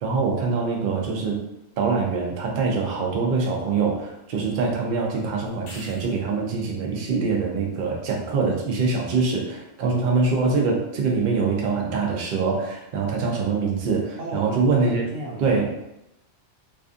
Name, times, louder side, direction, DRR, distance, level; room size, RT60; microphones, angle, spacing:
voice 1, 0.0-1.4 1.8-15.0 15.4-15.7, right 4 dB, 60° right, 0 dB, 0.6 m, -24 dB
sound 1, 5.5-6.4 11.1-11.2, left 2 dB, 80° left, 0.9 m, -45 dB
voice 2, 14.2-15.8, right 1 dB, 85° right, 0 dB, 1.0 m, -36 dB
2.4 x 2.4 x 2.4 m, 0.86 s
omnidirectional pair, 1.3 m